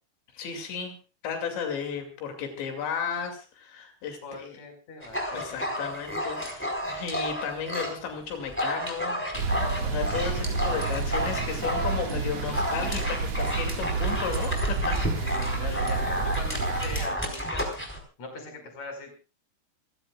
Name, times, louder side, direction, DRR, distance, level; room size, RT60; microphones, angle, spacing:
voice 1, 0.3-1.0 1.2-4.6 5.3-9.2 9.8-15.0 15.5-15.9 16.3-16.4, left 6 dB, 90° left, 4 dB, 4.9 m, -34 dB
voice 2, 4.2-5.8 15.2-17.7 18.2-19.1, left 3 dB, 40° left, 3 dB, 6.1 m, -41 dB
Dog, 5.0-8.0 8.3-18.0, equal, 5° left, 4.0 m, -31 dB
sound 1, 9.3-17.1, right 4 dB, 50° right, 2.4 m, -30 dB
28.5 x 16.0 x 2.4 m, 0.34 s
omnidirectional pair, 5.0 m